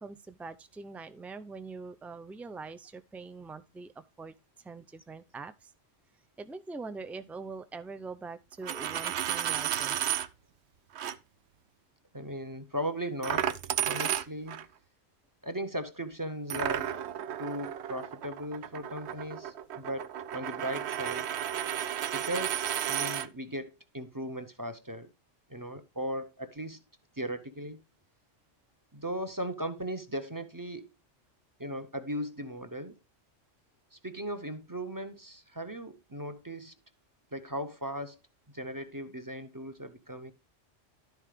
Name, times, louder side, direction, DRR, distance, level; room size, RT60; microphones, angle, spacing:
voice 1, 0.0-5.7 6.4-10.0, right 4 dB, ahead, 0.3 m, -43 dB
Coin (dropping), 8.5-10.3 10.9-11.1 13.2-14.6 16.5-23.3, right 10 dB, 65° right, 0.9 m, -33 dB
voice 2, 12.1-13.5 13.8-14.6 15.4-16.9 17.4-21.3 22.1-25.1 25.5-26.8 27.1-27.8 28.9-30.8 31.6-33.0 33.9-36.8 37.3-38.2 38.5-40.3, equal, 20° right, 0.9 m, -37 dB
12.0 x 4.5 x 5.1 m
omnidirectional pair, 1.3 m